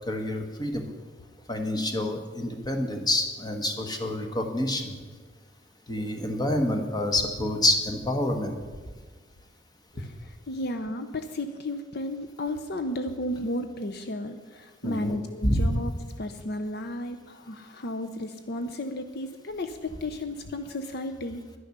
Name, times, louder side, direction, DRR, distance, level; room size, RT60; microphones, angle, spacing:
voice 1, 0.1-0.9 1.5-5.0 5.9-8.5 14.8-15.1 15.4-15.7, left 1 dB, 20° left, 4 dB, 1.4 m, -27 dB
voice 2, 10.0-15.9 16.2-21.4, left 1 dB, 60° left, 8 dB, 0.6 m, -33 dB
11.0 x 10.0 x 6.6 m, 1.4 s
head